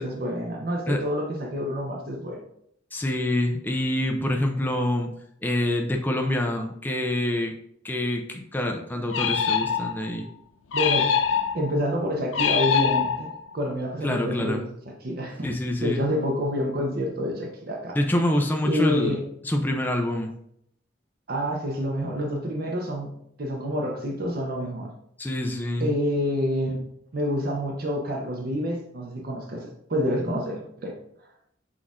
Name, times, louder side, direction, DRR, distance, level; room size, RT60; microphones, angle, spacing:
voice 1, 0.0-2.4 10.7-11.1 11.5-13.3 13.5-14.7 15.0-15.5 15.8-18.0 18.6-19.2 21.3-23.1 23.4-24.9 25.8-26.8 27.1-30.9, equal, 50° right, 0 dB, 0.7 m, -28 dB
voice 2, 2.9-5.1 5.4-7.5 7.8-10.3 14.0-14.6 15.4-16.0 17.9-19.2 19.4-20.3 25.2-25.9, left 1 dB, 10° left, 2 dB, 0.4 m, -26 dB
sound 1, 9.1-10.1 10.7-11.8 12.3-13.5, left 7 dB, 85° left, 0.4 m, -24 dB
6.1 x 2.4 x 3.6 m, 0.72 s
head